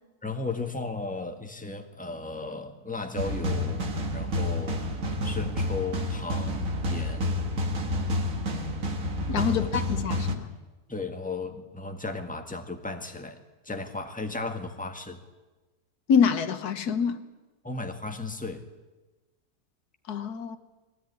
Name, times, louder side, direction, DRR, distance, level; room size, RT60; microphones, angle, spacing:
voice 1, 0.2-3.8 4.1-4.8 5.2-7.3 9.5-9.7 10.9-15.2 17.6-18.6, left 3 dB, 5° left, 1.7 m, -35 dB
sound 1, 3.2-10.3, left 1 dB, 60° right, 2.2 m, -29 dB
voice 2, 9.3-10.5 16.1-17.2 20.1-20.6, left 6 dB, 80° left, 1.6 m, -25 dB
21.5 x 17.5 x 9.7 m
omnidirectional pair, 1.6 m